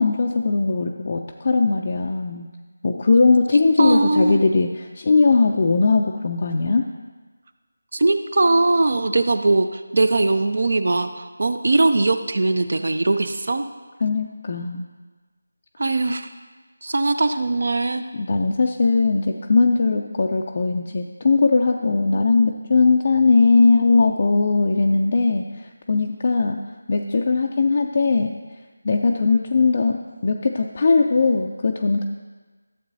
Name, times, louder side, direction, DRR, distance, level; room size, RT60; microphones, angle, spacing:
voice 1, 0.0-2.5 2.8-6.9 14.0-14.9 18.1-26.6 26.9-28.3 28.8-32.0, left 4 dB, 40° left, 2 dB, 0.4 m, -19 dB
voice 2, 3.8-4.4 7.9-13.6 15.8-16.3 16.8-18.0, right 2 dB, 60° right, 10 dB, 0.6 m, -20 dB
12.5 x 7.4 x 2.7 m, 1.3 s
figure-of-eight pair, 170°, 0 cm